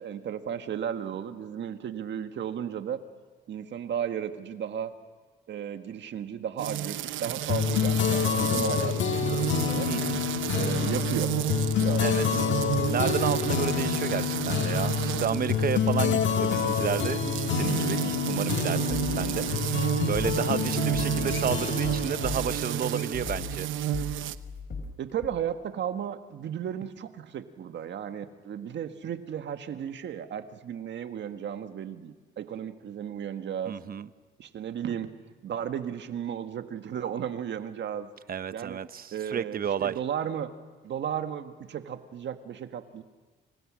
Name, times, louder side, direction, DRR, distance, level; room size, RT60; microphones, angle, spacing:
voice 1, 0.0-3.0 3.5-4.9 5.5-9.9 10.5-11.3 11.8-12.5 25.0-33.8 34.4-35.1 35.4-38.1 38.5-38.8 39.1-40.5 40.8-43.0, right 9 dB, 65° right, 8 dB, 1.7 m, -34 dB
sound 1, 6.6-24.4, right 12 dB, 80° right, 0.9 m, -31 dB
sound 2, 7.5-23.4, left 8 dB, 70° left, 1.6 m, -28 dB
voice 2, 9.9-10.2 12.0-12.4 12.9-23.7 33.7-34.1 38.3-40.0, right 8 dB, 50° right, 14 dB, 0.9 m, -31 dB
sound 3, 18.9-22.7 23.1-23.7 23.9-24.9 25.2-25.3, left 4 dB, 55° left, 5.2 m, -38 dB
29.0 x 28.5 x 6.4 m, 1.3 s
cardioid pair, 90°, 20 cm